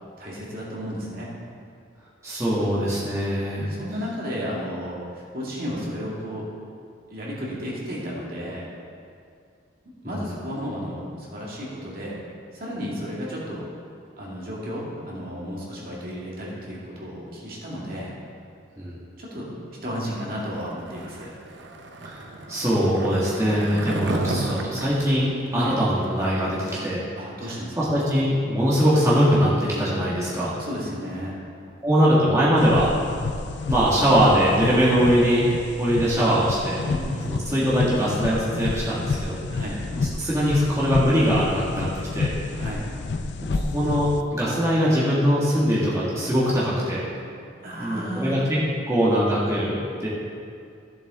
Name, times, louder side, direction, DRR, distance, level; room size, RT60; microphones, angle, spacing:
voice 1, 0.2-1.3 2.6-2.8 3.7-6.4 7.1-8.7 10.0-12.2 12.5-13.7 14.2-18.1 19.2-19.5 19.8-21.3 25.5-25.7 27.1-28.0 30.6-31.4 36.8-37.2 39.5-39.8 42.5-42.9 47.6-48.5, equal, 50° right, -5 dB, 2.2 m, -33 dB
voice 2, 2.2-3.6 10.0-10.2 18.8-19.0 22.0-22.2 22.5-27.0 27.8-30.6 31.8-32.9 33.7-35.5 35.8-36.8 37.3-39.4 40.2-42.3 43.5-47.0 47.8-48.6 48.9-50.1, equal, 15° right, -8 dB, 1.8 m, -22 dB
Skateboard, 20.9-26.3, right 2 dB, 70° right, 0.8 m, -33 dB
sound 1, 32.6-44.2, left 3 dB, 60° left, 0.5 m, -30 dB
14.0 x 7.6 x 3.7 m, 2.4 s
head